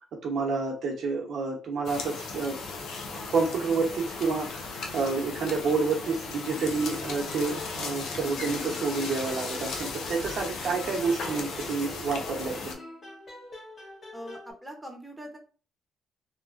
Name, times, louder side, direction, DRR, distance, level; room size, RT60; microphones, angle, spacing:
voice 1, 0.1-2.6 3.3-12.8, right 4 dB, 65° right, 0 dB, 1.0 m, -29 dB
sound 1, 1.8-12.7, left 4 dB, 75° left, 0.6 m, -36 dB
sound 2, 6.5-8.2 8.5-12.1 12.5-14.5, left 2 dB, 45° left, 1.2 m, -46 dB
voice 2, 14.1-15.4, equal, 10° right, 2 dB, 0.9 m, -42 dB
3.0 x 2.3 x 2.5 m, 0.38 s
cardioid pair, 90°, 0 cm